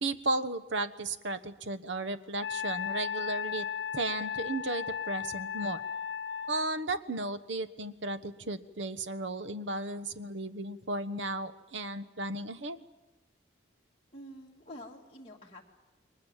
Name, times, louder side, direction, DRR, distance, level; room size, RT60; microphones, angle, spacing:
voice 1, 0.0-3.7 3.9-5.8 6.5-12.8, right 2 dB, 75° right, 11 dB, 1.2 m, -34 dB
Wind instrument woodwind instrument, 2.4-6.7, left 7 dB, 75° left, 0.8 m, -35 dB
voice 2, 14.1-15.6, equal, 30° left, -3 dB, 2.6 m, -47 dB
29.5 x 22.5 x 7.4 m, 1.0 s
head